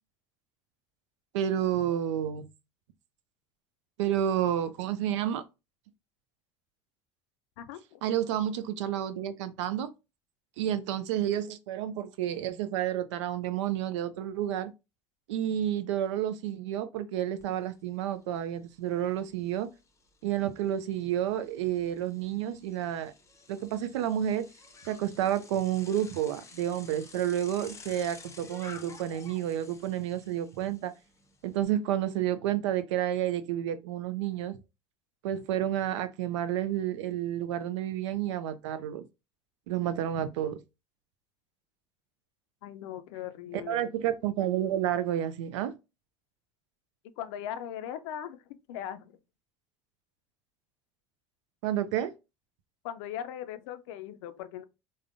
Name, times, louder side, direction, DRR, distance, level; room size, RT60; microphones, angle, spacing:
voice 1, 1.3-2.5 4.0-5.4 8.0-9.9 10.6-14.7 15.3-19.7 20.2-23.1 23.5-24.5 24.9-30.9 31.4-34.6 35.2-39.1 39.7-40.6 43.7-45.8 51.6-52.1, right 11 dB, 80° right, 0.4 m, -30 dB
voice 2, 7.6-8.0 42.6-43.9 47.2-48.4 48.7-49.2 52.8-54.6, left 10 dB, 75° left, 0.4 m, -39 dB
Bicycle, 17.4-17.5 17.9-31.6, left 4 dB, 20° left, 0.6 m, -52 dB
3.5 x 2.1 x 2.5 m
hypercardioid pair, 75°, 15 cm